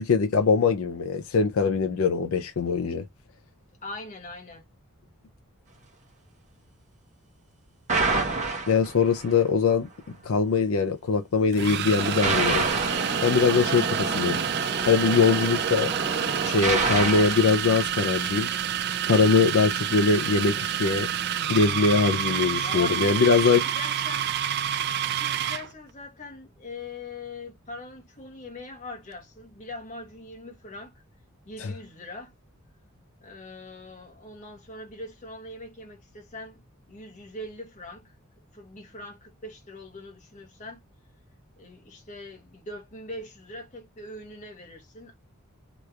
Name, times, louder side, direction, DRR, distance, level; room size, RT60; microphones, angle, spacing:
voice 1, 0.0-3.0 8.7-9.9 10.2-12.7 13.2-14.4 14.9-15.9 16.4-18.5 19.1-21.1 21.5-23.6 31.6-31.7, left 4 dB, 65° left, 0.5 m, -22 dB
voice 2, 3.8-4.6 22.6-24.5 24.9-30.9 31.4-32.3 33.2-38.2 38.5-40.8 41.6-45.1, left 2 dB, 35° left, 1.1 m, -42 dB
sound 1, 7.9-9.3 12.0-18.5, right 3 dB, 35° right, 1.0 m, -28 dB
sound 2, 10.2-10.4 11.5-25.7, right 10 dB, 50° right, 0.4 m, -29 dB
3.2 x 3.0 x 2.4 m
head